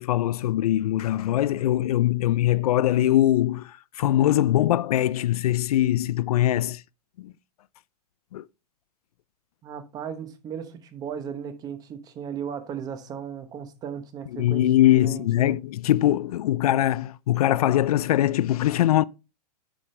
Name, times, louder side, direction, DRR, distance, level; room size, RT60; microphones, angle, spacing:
voice 1, 0.0-6.8 7.2-7.3 8.3-8.5 14.3-19.0, left 13 dB, 70° left, 0.4 m, -22 dB
voice 2, 9.6-14.6 14.9-15.6, right 8 dB, 20° right, 1.0 m, -36 dB
10.0 x 6.1 x 3.2 m
hypercardioid pair, 160°, 20 cm